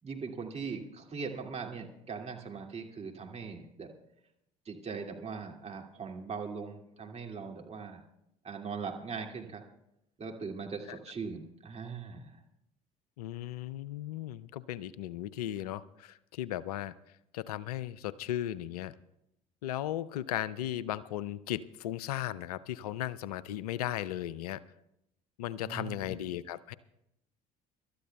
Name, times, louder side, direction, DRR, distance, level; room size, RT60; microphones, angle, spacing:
voice 1, 0.0-3.9 4.7-8.0 8.4-9.6 10.2-12.4 25.6-26.2, right 5 dB, 35° right, 2 dB, 2.3 m, -40 dB
voice 2, 13.2-16.9 17.3-19.0 19.6-24.6 25.4-26.7, left 13 dB, 80° left, 19 dB, 0.5 m, -36 dB
26.5 x 13.0 x 2.3 m, 0.82 s
hypercardioid pair, 60°, 19 cm